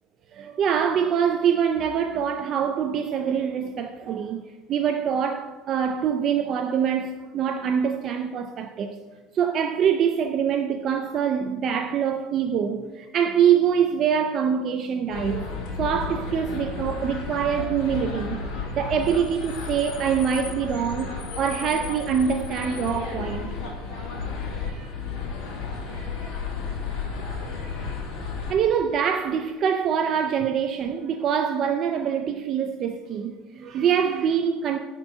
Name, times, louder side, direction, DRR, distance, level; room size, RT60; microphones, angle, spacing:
voice 1, 0.3-4.4 4.7-9.0 9.3-18.4 18.7-23.6 24.7-24.9 25.9-26.1 27.8-27.9 28.5-34.8, right 8 dB, 40° right, 0.4 m, -24 dB
sound 1, 15.1-28.5, left 5 dB, 55° left, 2.1 m, -33 dB
9.8 x 4.4 x 5.4 m
cardioid pair, 150°, 0 cm